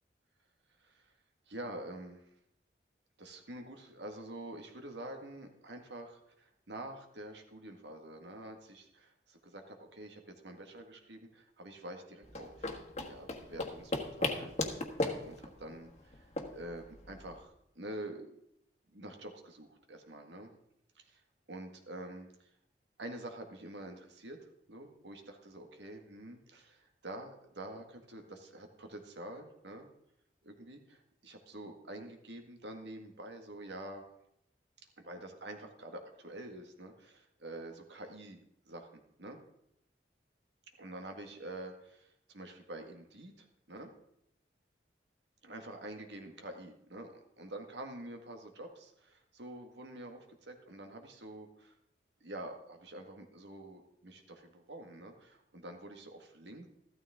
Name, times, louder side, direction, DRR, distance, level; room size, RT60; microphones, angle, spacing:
voice 1, 0.8-1.1 1.5-2.2 3.2-14.6 15.0-18.4 18.9-20.5 21.0-21.2 21.5-22.5 23.0-24.4 24.7-29.9 30.4-34.0 35.0-38.4 38.7-39.4 40.8-43.9 45.4-51.7 52.2-56.7, right 1 dB, 75° right, 4 dB, 1.8 m, -47 dB
sound 1, 12.2-17.4, left 2 dB, 35° left, 1.4 m, -37 dB
14.0 x 12.5 x 3.7 m, 0.75 s
head